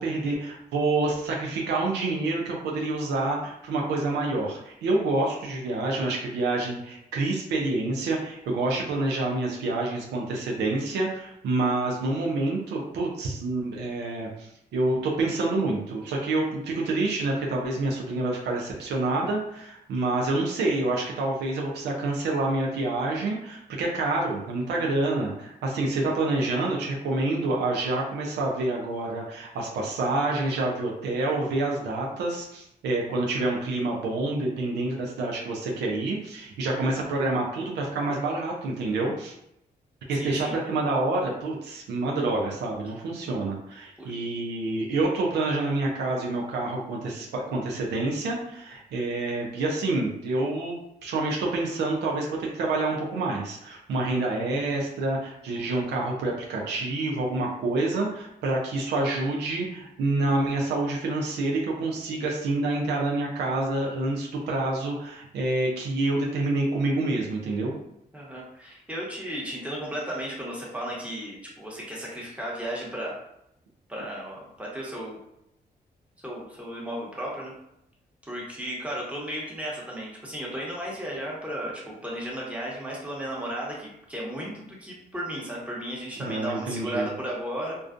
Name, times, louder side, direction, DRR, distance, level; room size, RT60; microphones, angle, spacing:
voice 1, 0.0-39.3 40.1-50.8 51.0-67.7 86.2-87.1, right 2 dB, 85° right, -1 dB, 0.5 m, -27 dB
voice 2, 40.1-40.5 44.0-44.1 68.1-73.2 73.9-75.2 76.2-77.5 78.3-87.8, equal, 5° right, -4 dB, 1.0 m, -34 dB
2.4 x 2.2 x 2.4 m, 0.79 s
cardioid pair, 55°, 17 cm